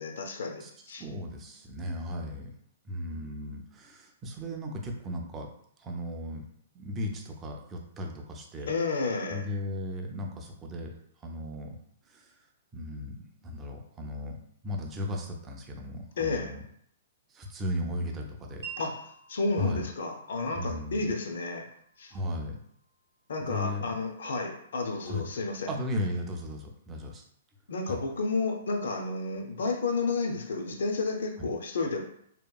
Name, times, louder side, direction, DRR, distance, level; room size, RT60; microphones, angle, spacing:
voice 1, 0.0-1.0 3.1-3.2 8.7-9.4 16.2-16.5 18.8-19.0 19.3-21.7 22.0-22.1 23.3-25.7 27.7-32.1, left 3 dB, 75° left, 4 dB, 0.5 m, -31 dB
voice 2, 1.0-2.4 2.8-5.5 5.8-6.4 6.7-8.7 9.3-10.9 11.2-11.8 12.0-12.4 12.7-13.1 13.4-14.4 14.6-16.6 17.3-18.6 19.6-19.9 20.5-21.1 22.1-22.6 23.4-24.0 25.0-25.3 25.7-27.2 27.8-28.0 31.4-31.5, left 1 dB, 15° right, 1 dB, 0.3 m, -36 dB
Wind chime, 18.6-24.7, right 6 dB, 85° right, 0.5 m, -50 dB
2.8 x 2.2 x 2.2 m, 0.68 s
hypercardioid pair, 170°, 0 cm